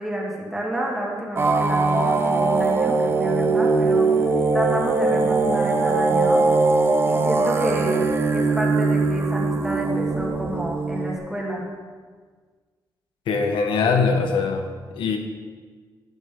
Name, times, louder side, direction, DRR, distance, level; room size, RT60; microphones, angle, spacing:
voice 1, 0.0-6.4 7.1-11.7, right 1 dB, 5° right, -3 dB, 2.2 m, -30 dB
sound 1, 1.4-11.2, right 3 dB, 30° right, 0.7 m, -21 dB
voice 2, 13.3-15.2, left 4 dB, 85° left, 5 dB, 1.3 m, -22 dB
11.5 x 9.2 x 3.8 m, 1.5 s
cardioid pair, 130°, 8 cm